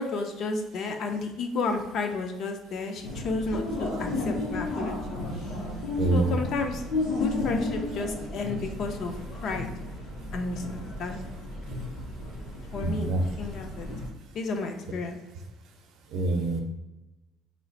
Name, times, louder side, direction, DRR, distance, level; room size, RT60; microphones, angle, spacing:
voice 1, 0.0-5.0 6.1-9.1 9.4-9.7 10.3-11.2 12.7-13.9 14.3-15.2, left 3 dB, 45° left, 5 dB, 0.4 m, -32 dB
sound 1, 3.0-14.1, left 2 dB, 90° left, 1.0 m, -33 dB
voice 2, 12.8-13.2 16.1-16.6, right 2 dB, 60° right, 4 dB, 0.6 m, -25 dB
3.1 x 2.4 x 3.9 m, 0.99 s
cardioid pair, 165°, 0 cm